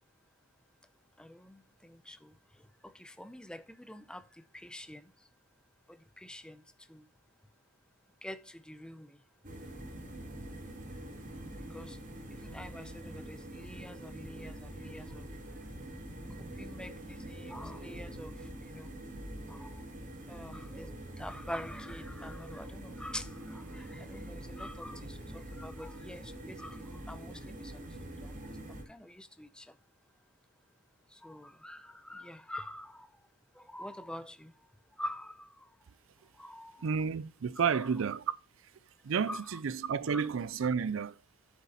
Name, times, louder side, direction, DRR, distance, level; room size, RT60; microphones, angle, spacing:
voice 1, 1.2-5.1 5.9-6.6 6.9-7.1 8.2-9.2 11.7-12.0 12.3-15.3 16.5-18.9 19.5-19.8 20.3-29.8 31.1-33.2 33.5-34.5 35.0-35.7 36.3-36.9 39.3-39.4 40.1-40.2, left 1 dB, 5° left, 0.6 m, -46 dB
sound 1, 9.4-28.8, right 1 dB, 40° right, 2.4 m, -45 dB
voice 2, 36.8-38.2 39.0-41.2, right 6 dB, 75° right, 0.4 m, -31 dB
9.2 x 7.3 x 4.2 m
head